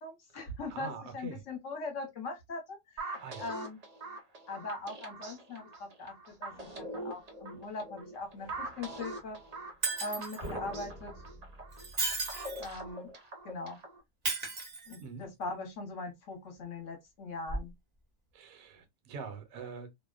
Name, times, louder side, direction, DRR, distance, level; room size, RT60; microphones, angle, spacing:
voice 1, 0.0-3.8 4.5-9.4 10.0-11.1 12.6-13.1 13.4-13.8 14.9-17.7, left 3 dB, 55° left, 1.1 m, -41 dB
voice 2, 0.7-1.4 3.2-3.5 9.9-10.0 10.4-10.5 15.0-15.3 18.3-19.9, right 5 dB, 65° right, 1.0 m, -44 dB
sound 1, 3.0-14.0, right 2 dB, 85° right, 0.3 m, -43 dB
sound 2, 6.5-7.5 8.3-9.7 10.4-12.9, equal, 20° left, 0.8 m, -49 dB
Shatter, 9.8-10.5 11.7-12.7 14.2-15.2 17.5-17.6, right 3 dB, 40° right, 0.5 m, -34 dB
2.7 x 2.1 x 2.2 m
omnidirectional pair, 1.7 m